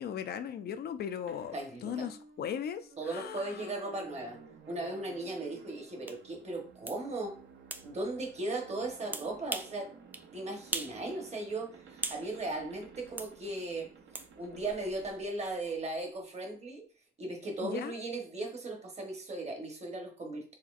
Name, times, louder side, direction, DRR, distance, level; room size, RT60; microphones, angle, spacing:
voice 1, 0.0-1.5 1.8-4.1 17.6-18.0, left 8 dB, 55° left, 11 dB, 0.4 m, -38 dB
sound 1, 1.3-16.0, right 5 dB, 65° right, 0.7 m, -55 dB
voice 2, 1.5-2.1 3.0-4.4 4.7-7.4 7.8-9.9 10.3-13.9 14.4-16.8 17.2-20.6, right 2 dB, 35° right, 2 dB, 1.1 m, -37 dB
sound 2, 6.1-6.2 6.9-7.0 7.7-7.9 9.1-9.8 10.1-10.3 10.7-11.0 11.3-12.3 13.2-13.3 14.1-14.3, right 2 dB, 10° right, 0.3 m, -38 dB
4.2 x 2.8 x 2.5 m, 0.42 s
cardioid pair, 90°, 20 cm